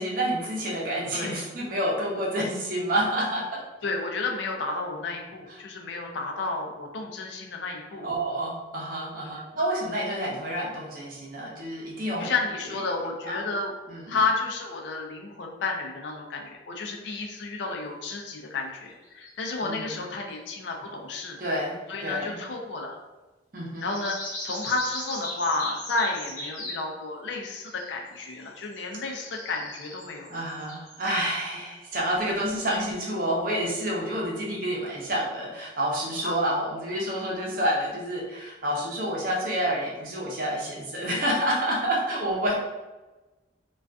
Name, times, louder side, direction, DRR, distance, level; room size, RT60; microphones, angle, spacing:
voice 1, 0.0-3.6 8.0-12.3 13.2-13.4 13.9-14.2 19.6-19.9 21.4-21.8 22.0-22.4 23.5-23.9 30.3-42.5, right 1 dB, 50° right, -3 dB, 0.6 m, -28 dB
voice 2, 3.8-8.1 9.3-9.4 12.2-13.7 14.1-21.4 21.9-23.0 23.8-24.2 24.4-30.3 36.2-36.4, left 3 dB, 80° left, 1 dB, 0.4 m, -31 dB
sound 1, 19.0-19.3 20.3-20.4 23.8-26.8 27.6-28.1 28.4-31.0, left 1 dB, 45° left, 0.8 m, -38 dB
2.4 x 2.3 x 2.3 m, 1.1 s
head